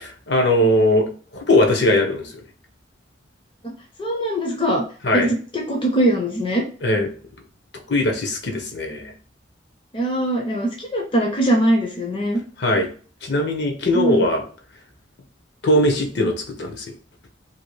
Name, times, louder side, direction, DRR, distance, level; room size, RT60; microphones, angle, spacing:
voice 1, 0.0-2.3 5.0-5.3 6.8-7.1 7.9-9.1 12.6-12.9 13.2-14.4 15.6-16.9, left 1 dB, 65° left, 3 dB, 0.7 m, -20 dB
voice 2, 4.0-4.8 5.1-5.3 5.5-6.6 9.9-12.4 13.9-14.3, right 1 dB, 25° left, 0 dB, 0.5 m, -21 dB
2.7 x 2.5 x 3.1 m, 0.41 s
head